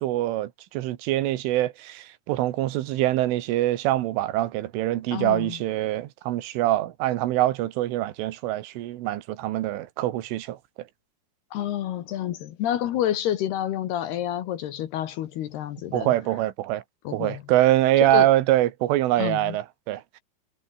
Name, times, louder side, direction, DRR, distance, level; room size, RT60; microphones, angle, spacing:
voice 1, 0.0-10.6 15.9-16.8 17.1-20.2, right 15 dB, 80° right, 3.8 m, -24 dB
voice 2, 5.1-5.6 11.5-16.1 17.0-17.4 18.0-18.3 19.2-19.6, left 11 dB, 65° left, 2.9 m, -29 dB
omnidirectional pair, 5.7 m